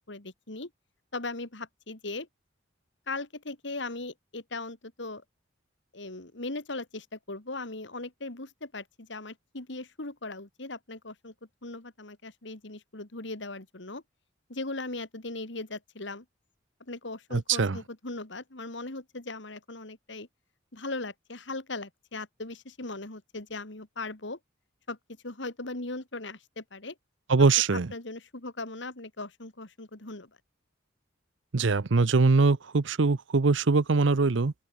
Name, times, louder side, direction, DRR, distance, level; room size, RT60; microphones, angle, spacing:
voice 1, 0.1-0.7 1.1-2.3 3.1-5.2 5.9-11.3 11.6-14.0 14.5-16.2 16.9-20.3 20.7-24.4 24.9-25.0 25.2-26.9 27.7-30.3, left 2 dB, 65° left, 2.5 m, -38 dB
voice 2, 17.3-17.8 27.3-27.9 31.5-34.5, right 4 dB, 70° right, 0.7 m, -22 dB
open air
head